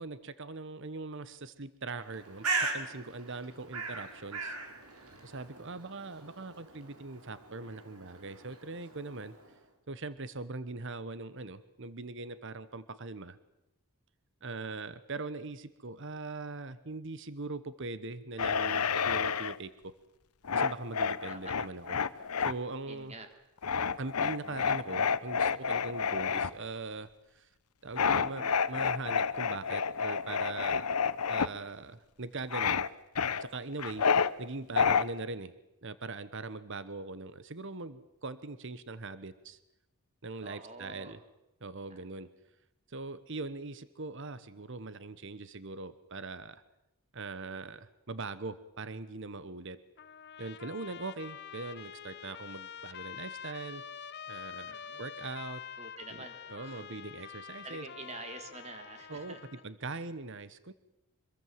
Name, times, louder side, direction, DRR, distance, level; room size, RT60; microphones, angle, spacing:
voice 1, 0.0-4.6 5.2-9.3 9.9-13.4 14.4-19.9 20.5-22.0 22.4-23.1 24.0-27.5 27.8-30.9 31.3-32.9 33.4-34.1 34.4-35.5 35.8-39.6 40.2-41.2 41.6-42.3 42.9-46.6 47.1-49.8 50.4-53.8 54.3-55.6 56.1-56.2 56.5-57.8 59.1-59.4 59.6-60.7, right 3 dB, 55° right, 14 dB, 1.1 m, -41 dB
Bird, 2.0-9.6, right 3 dB, 90° right, 4.6 m, -39 dB
sound 1, 18.4-19.6 20.4-22.5 23.6-26.5 28.0-31.5 32.5-32.9 33.2-34.3 34.8-35.0, left 6 dB, 90° left, 0.9 m, -29 dB
voice 2, 22.9-23.3 40.4-41.2 41.9-42.0 54.7-55.0 55.8-56.9 57.2-57.3 57.6-59.5 59.9-60.0, right 2 dB, 30° right, 6 dB, 3.1 m, -47 dB
Trumpet, 50.0-59.7, left 8 dB, 50° left, 0.9 m, -46 dB
25.5 x 22.0 x 7.5 m, 0.90 s
head